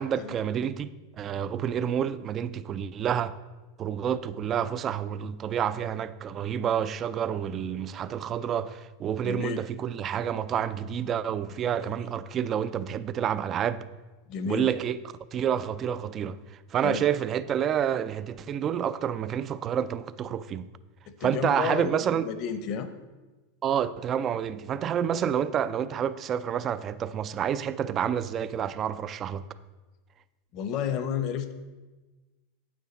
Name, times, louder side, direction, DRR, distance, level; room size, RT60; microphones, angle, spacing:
voice 1, 0.0-3.3 3.8-13.9 14.4-15.0 15.3-20.7 21.2-22.3 23.6-29.4, right 9 dB, 30° right, 0.4 m, -29 dB
voice 2, 9.2-9.6 11.8-12.0 14.3-14.7 16.8-17.0 21.2-22.9 30.5-31.5, left 7 dB, 50° left, 0.8 m, -32 dB
8.7 x 8.5 x 4.0 m
supercardioid pair, 125°, 0 cm